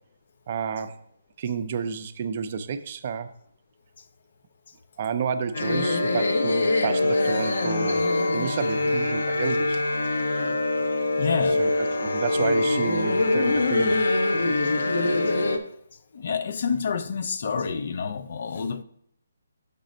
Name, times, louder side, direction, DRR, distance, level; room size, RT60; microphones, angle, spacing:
voice 1, 0.5-1.0 1.4-3.3 5.0-9.8 11.6-14.1, right 6 dB, 40° right, 0.5 m, -30 dB
sound 1, 5.5-15.6, left 2 dB, 70° left, 0.9 m, -24 dB
voice 2, 11.2-11.6 16.1-18.8, left 6 dB, 55° left, 0.5 m, -28 dB
6.7 x 4.0 x 5.1 m
figure-of-eight pair, 150°, 0 cm